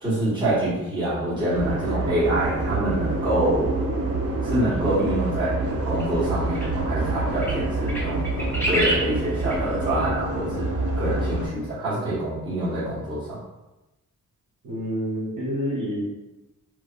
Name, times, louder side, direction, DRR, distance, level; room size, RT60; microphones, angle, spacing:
voice 1, 0.0-3.8 4.4-13.4, right 1 dB, 15° right, -12 dB, 1.3 m, -26 dB
sound 1, 1.5-11.5, right 2 dB, 45° right, 0.5 m, -27 dB
sound 2, 6.0-6.1 6.5-6.7 7.4-7.6 7.9-9.1 9.5-9.6, equal, 5° left, 0.5 m, -26 dB
voice 2, 14.6-16.0, equal, 60° right, -8 dB, 1.2 m, -28 dB
3.3 x 2.1 x 2.5 m, 1.0 s
wide cardioid pair, 145°, 34 cm